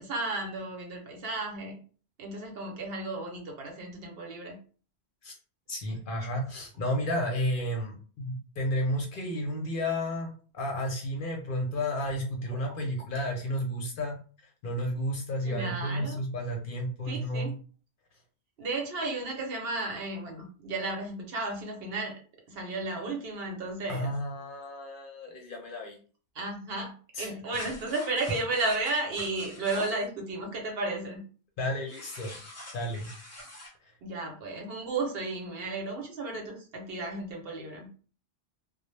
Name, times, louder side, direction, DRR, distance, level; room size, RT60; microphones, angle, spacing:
voice 1, 0.0-1.8 2.2-4.6 15.4-16.1 17.1-17.5 18.6-22.2 22.5-24.1 26.3-31.2 34.0-37.9, right 2 dB, 65° right, 1 dB, 0.8 m, -33 dB
voice 2, 5.7-14.2 14.6-17.5 23.9-26.0 27.1-27.3 31.6-32.3 32.7-33.1 33.8-33.9, equal, 60° left, 1 dB, 0.6 m, -32 dB
sound 1, 27.5-30.0 31.9-33.7, equal, 20° left, 0.4 m, -43 dB
2.0 x 2.0 x 3.0 m, 0.40 s
omnidirectional pair, 1.2 m